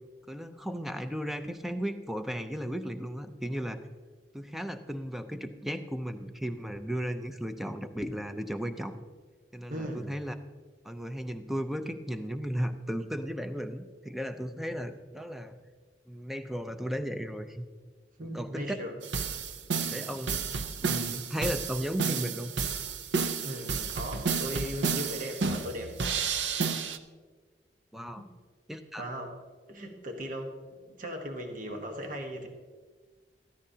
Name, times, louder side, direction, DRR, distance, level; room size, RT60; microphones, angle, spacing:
voice 1, 0.3-3.8 4.3-9.0 9.5-10.3 10.8-15.6 16.1-17.6 18.2-18.8 19.9-20.4 20.8-22.5 27.9-28.3 28.7-29.0, equal, ahead, 8 dB, 0.5 m, -35 dB
voice 2, 9.7-10.1 18.2-19.0 23.4-26.0 28.1-28.3 29.0-29.3 29.7-32.5, equal, 50° right, 3 dB, 1.2 m, -38 dB
sound 1, 19.0-27.0, right 5 dB, 85° right, 0.6 m, -31 dB
13.5 x 13.0 x 2.8 m, 1.4 s
head